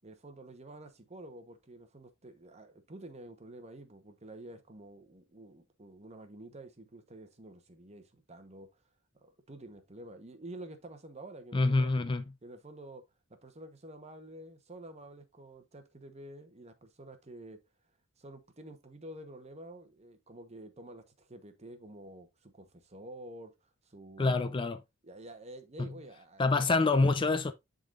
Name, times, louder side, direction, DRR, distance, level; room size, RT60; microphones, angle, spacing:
voice 1, 0.0-8.7 9.1-11.9 12.4-13.0 13.4-17.6 18.2-24.6 25.0-26.7, right 1 dB, 35° right, 1.1 m, -49 dB
voice 2, 11.5-12.2 24.2-24.8 25.8-25.9 26.4-27.5, left 3 dB, 25° left, 0.4 m, -26 dB
10.5 x 3.9 x 2.5 m
head